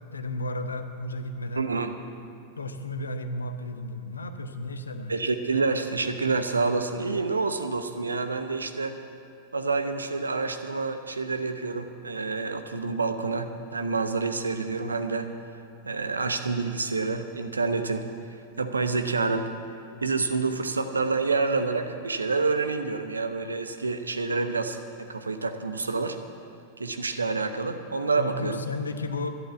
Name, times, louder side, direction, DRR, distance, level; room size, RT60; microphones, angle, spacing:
voice 1, 0.1-1.7 2.6-5.2 28.2-29.3, left 2 dB, 75° left, 8 dB, 0.9 m, -33 dB
voice 2, 1.6-2.0 5.1-9.0 9.5-15.3 15.8-18.1 18.6-19.6 20.0-24.8 25.1-26.2 26.8-28.6, right 4 dB, 75° right, 8 dB, 0.9 m, -28 dB
11.5 x 11.0 x 8.2 m, 2.7 s
figure-of-eight pair, 90°, 0 cm